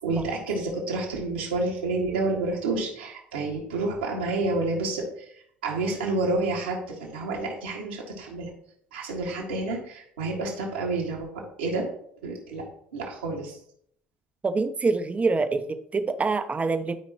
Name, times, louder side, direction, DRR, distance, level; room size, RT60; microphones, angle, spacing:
voice 1, 0.0-8.5 8.9-11.9 12.2-12.6 12.9-13.6, right 2 dB, 85° right, -3 dB, 2.1 m, -29 dB
voice 2, 14.4-17.0, right 3 dB, 25° right, 10 dB, 0.8 m, -25 dB
12.5 x 5.0 x 3.0 m, 0.67 s
hypercardioid pair, 60°, 5 cm